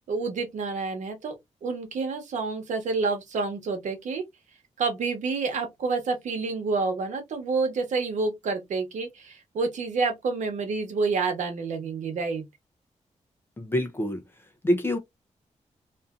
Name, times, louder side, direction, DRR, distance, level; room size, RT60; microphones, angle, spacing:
voice 1, 0.0-1.3 1.6-4.2 4.8-12.4, right 4 dB, 90° right, 1.0 m, -28 dB
voice 2, 13.6-14.2 14.6-15.0, equal, 20° left, 0.6 m, -25 dB
2.6 x 2.5 x 2.3 m
wide cardioid pair, 165°, 12 cm